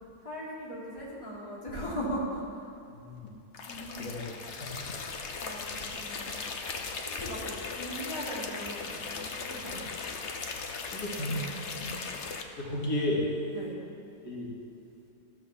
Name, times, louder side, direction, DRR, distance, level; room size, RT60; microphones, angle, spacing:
voice 1, 0.2-2.7 3.7-4.3 5.4-6.4 6.7-6.8 7.0-9.9 11.8-11.9 13.5-13.8, equal, 20° left, -5 dB, 2.4 m, -39 dB
sound 1, 3.5-12.4, left 4 dB, 55° left, 1.0 m, -38 dB
voice 2, 10.7-11.5 12.6-13.2 14.2-14.5, left 1 dB, 75° left, -4 dB, 2.5 m, -32 dB
14.0 x 6.4 x 6.9 m, 2.7 s
omnidirectional pair, 1.6 m